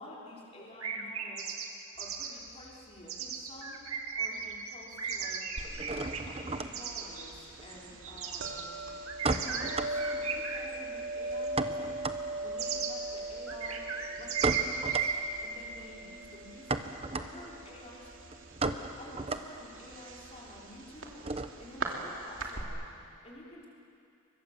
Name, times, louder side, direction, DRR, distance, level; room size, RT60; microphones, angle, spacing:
voice 1, 0.0-1.6 2.0-3.8 4.2-5.4 5.9-8.7 9.4-11.9 12.4-13.9 14.1-15.1 15.4-16.8 17.1-18.1 18.5-21.2 21.6-22.9 23.2-23.7, left 1 dB, 30° left, -5 dB, 4.5 m, -50 dB
sound 1, 0.8-1.7 2.0-2.3 3.1-7.3 7.7-8.6 9.0-10.7 11.4-11.5 12.6-12.9 13.5-15.2, right 7 dB, 85° right, 2.4 m, -35 dB
sound 2, 2.0-3.6 3.9-4.6 4.8-21.8, right 3 dB, 30° right, 1.0 m, -37 dB
sound 3, 5.6-22.6, right 2 dB, 65° right, 2.9 m, -41 dB
29.5 x 24.0 x 7.6 m, 2.6 s
head